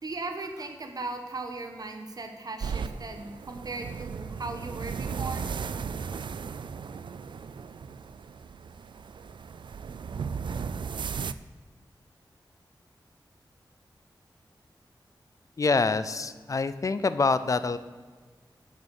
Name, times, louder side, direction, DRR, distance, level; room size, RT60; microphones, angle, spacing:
voice 1, 0.0-5.4, right 3 dB, 50° right, 5 dB, 1.2 m, -37 dB
sound 1, 2.6-11.3, right 6 dB, 75° right, 0.4 m, -36 dB
voice 2, 15.6-17.8, left 4 dB, 45° left, 13 dB, 0.5 m, -26 dB
8.9 x 6.7 x 6.4 m, 1.5 s
wide cardioid pair, 110°, 8 cm